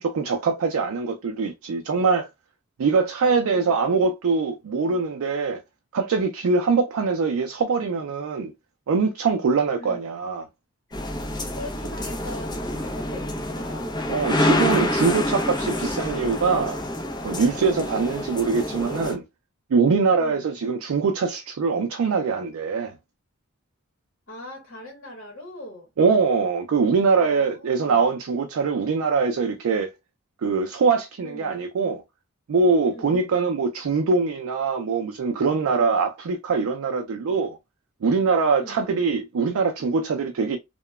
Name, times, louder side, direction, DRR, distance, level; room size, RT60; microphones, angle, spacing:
voice 1, 0.0-2.3 2.8-5.6 5.9-8.5 8.9-10.4 14.1-16.8 17.2-19.2 19.7-22.9 26.0-29.9 30.4-32.0 32.5-37.6 38.0-40.6, right 4 dB, 90° right, 0.4 m, -23 dB
voice 2, 3.3-4.0 9.8-10.0 11.5-14.0 20.2-20.5 24.3-25.9 27.2-28.2 31.2-31.6 32.8-33.3 38.5-38.8, left 1 dB, 55° left, 1.0 m, -41 dB
sound 1, 10.9-19.1, left 1 dB, 20° left, 0.6 m, -27 dB
2.8 x 2.1 x 2.2 m
head